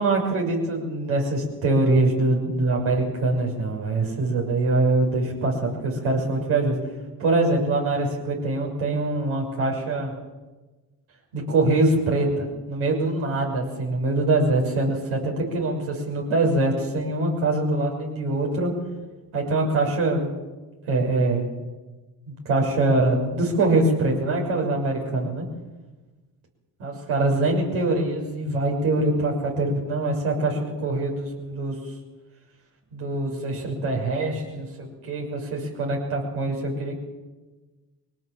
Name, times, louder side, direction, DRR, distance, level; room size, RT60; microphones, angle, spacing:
voice 1, 0.0-6.8 7.2-10.1 11.3-18.7 19.3-20.3 20.9-21.5 22.4-25.5 26.8-31.8 32.9-36.9, right 2 dB, 80° right, -1 dB, 6.4 m, -23 dB
23.5 x 18.5 x 7.4 m, 1.2 s
hypercardioid pair, 40°, 49 cm